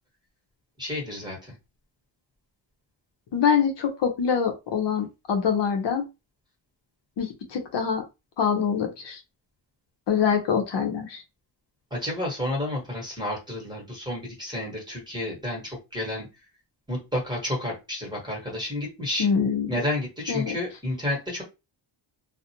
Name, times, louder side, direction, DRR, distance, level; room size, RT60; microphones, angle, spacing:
voice 1, 0.8-1.5 11.9-16.3 16.9-19.3 19.7-21.4, left 1 dB, 10° right, -2 dB, 1.2 m, -31 dB
voice 2, 3.3-6.1 7.2-8.0 8.4-9.2 10.1-11.2 19.2-19.7 20.3-20.5, left 7 dB, 60° left, 4 dB, 0.7 m, -24 dB
2.4 x 2.1 x 2.8 m, 0.25 s
cardioid pair, 110°, 47 cm